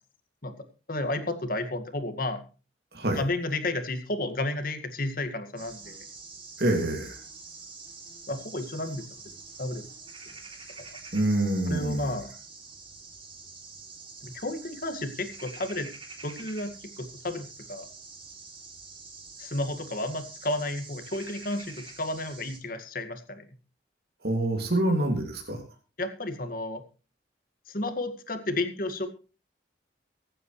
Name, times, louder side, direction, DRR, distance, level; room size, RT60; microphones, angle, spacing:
voice 1, 0.9-2.4 3.2-6.0 8.3-9.1 9.6-9.8 11.7-12.3 14.2-15.9 16.2-17.9 19.4-23.4 26.0-26.8 27.7-29.1, left 2 dB, 50° left, 7 dB, 2.0 m, -32 dB
sound 1, 5.6-22.6, right 4 dB, 30° right, 3.1 m, -46 dB
voice 2, 6.6-7.2 11.1-12.1 24.2-25.6, right 1 dB, 60° right, 2 dB, 2.6 m, -26 dB
24.0 x 8.9 x 3.2 m, 0.34 s
head